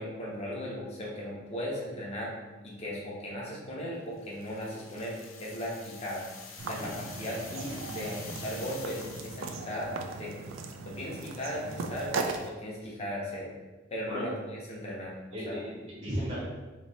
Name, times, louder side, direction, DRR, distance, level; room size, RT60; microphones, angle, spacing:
voice 1, 0.0-2.3 2.6-6.2 6.6-9.9 10.2-10.3 10.7-12.1 12.4-13.5 13.9-15.6, equal, 30° left, -4 dB, 0.9 m, -37 dB
sound 1, 4.2-9.7, left 5 dB, 80° left, 0.6 m, -47 dB
sound 2, 6.6-12.5, right 4 dB, 75° right, 0.4 m, -38 dB
voice 2, 15.3-16.4, equal, 35° right, -8 dB, 0.9 m, -35 dB
3.1 x 2.8 x 4.1 m, 1.2 s
head